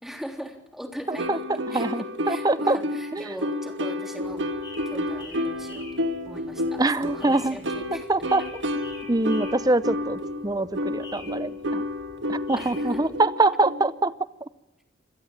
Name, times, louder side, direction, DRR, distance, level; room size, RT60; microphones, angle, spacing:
voice 1, 0.0-4.4 4.8-5.9 6.2-8.1 12.5-13.0, equal, ahead, 3 dB, 3.4 m, -40 dB
sound 1, 1.1-14.1, left 1 dB, 70° right, 1.9 m, -31 dB
voice 2, 1.7-2.8 3.1-3.2 6.8-7.6 8.1-8.4 9.1-11.8 12.3-14.1, right 2 dB, 20° right, 16 dB, 0.7 m, -24 dB
sound 2, 4.2-13.2, left 2 dB, 25° left, 5.1 m, -47 dB
25.5 x 17.0 x 8.8 m, 1.0 s
head